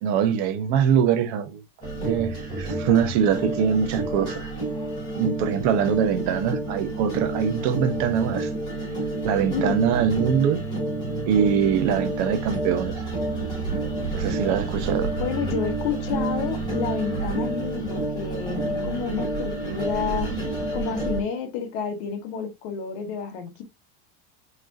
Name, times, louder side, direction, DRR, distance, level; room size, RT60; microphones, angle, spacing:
voice 1, 0.0-1.6 2.0-4.5 5.1-8.5 9.2-10.6 11.3-13.0 14.1-15.2, right 8 dB, 55° right, 0.9 m, -23 dB
sound 1, 1.8-21.2, right 2 dB, 15° left, 2.7 m, -29 dB
voice 2, 9.5-9.9 15.2-20.3 20.7-23.6, left 6 dB, 60° left, 1.5 m, -30 dB
4.7 x 4.0 x 2.7 m
cardioid pair, 170°, 30 cm